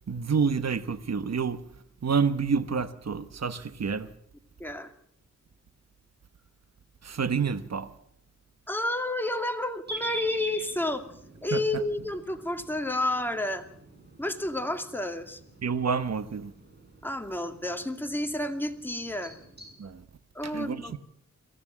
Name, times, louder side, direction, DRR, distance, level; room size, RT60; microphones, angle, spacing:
voice 1, 0.1-1.6 2.0-4.1 7.0-7.9 11.5-11.6 15.6-16.5 19.8-20.0 20.5-21.0, right 5 dB, 60° right, 1.2 m, -28 dB
voice 2, 4.6-4.9 8.7-11.1 11.4-13.7 14.2-15.4 17.0-19.4 20.3-21.0, left 1 dB, 5° left, 2.4 m, -30 dB
sound 1, 9.9-19.7, right 2 dB, 35° right, 7.6 m, -45 dB
23.5 x 15.0 x 7.4 m
wide cardioid pair, 65°, 30 cm